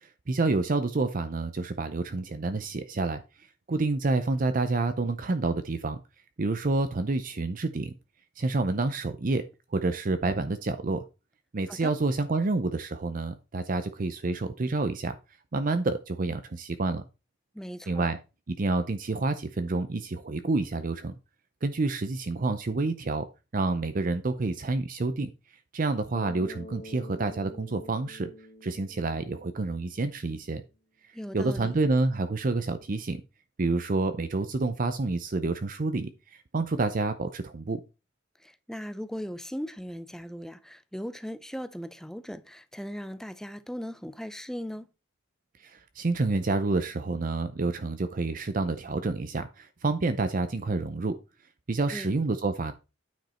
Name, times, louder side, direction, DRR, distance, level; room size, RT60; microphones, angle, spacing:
voice 1, 0.0-6.0 6.4-7.9 8.4-9.4 9.7-11.0 11.5-15.2 15.5-17.0 17.9-18.2 18.5-21.1 21.6-23.3 23.5-25.3 25.7-28.3 28.6-30.6 31.3-33.2 33.6-37.8 45.6-51.1 51.7-52.7, right 3 dB, 45° right, 0.6 m, -28 dB
voice 2, 17.5-18.1 31.1-31.7 38.4-44.9 51.9-52.1, equal, 5° left, 0.5 m, -38 dB
Bass guitar, 26.1-30.4, left 1 dB, 45° left, 1.1 m, -47 dB
9.2 x 5.2 x 4.3 m
head